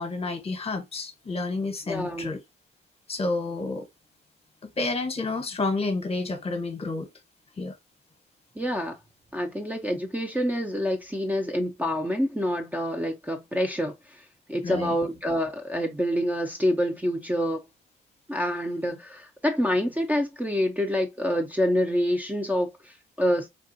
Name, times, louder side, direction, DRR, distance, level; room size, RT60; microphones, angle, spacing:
voice 1, 0.0-2.4 3.1-3.9 4.6-7.1 7.6-7.7 14.6-15.0, left 3 dB, 30° left, 0.9 m, -30 dB
voice 2, 1.9-2.3 8.6-9.0 9.3-17.6 18.3-23.5, equal, 10° right, 0.5 m, -27 dB
3.6 x 2.3 x 2.5 m
cardioid pair, 90°, 20 cm